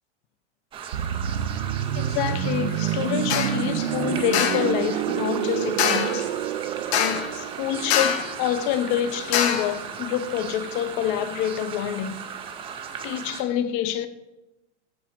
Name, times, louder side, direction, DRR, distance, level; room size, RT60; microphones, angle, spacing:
sound 1, 0.7-13.4, right 7 dB, 15° right, 0.4 m, -37 dB
sound 2, 0.9-10.6 10.8-11.1, right 10 dB, 70° right, 0.5 m, -29 dB
voice 1, 2.0-6.4 7.0-12.2 13.0-14.1, left 10 dB, 35° left, 0.6 m, -27 dB
sound 3, 3.3-3.6 4.3-4.7 5.8-6.2 6.9-7.4 7.9-8.4 9.3-9.8, left 8 dB, 70° left, 0.9 m, -24 dB
6.2 x 4.7 x 6.6 m
supercardioid pair, 145°, 34 cm